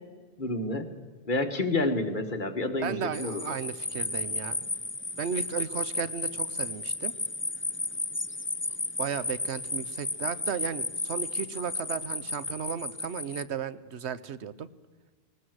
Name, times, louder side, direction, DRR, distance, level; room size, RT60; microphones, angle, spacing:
voice 1, 0.4-0.9 1.3-3.4, left 2 dB, 50° left, 6 dB, 1.9 m, -29 dB
voice 2, 2.8-4.7 5.2-7.1 9.0-14.7, right 7 dB, 85° right, 15 dB, 1.2 m, -35 dB
sound 1, 3.1-13.4, left 2 dB, 15° left, 0.6 m, -33 dB
20.5 x 19.0 x 8.0 m, 1.4 s
omnidirectional pair, 1.1 m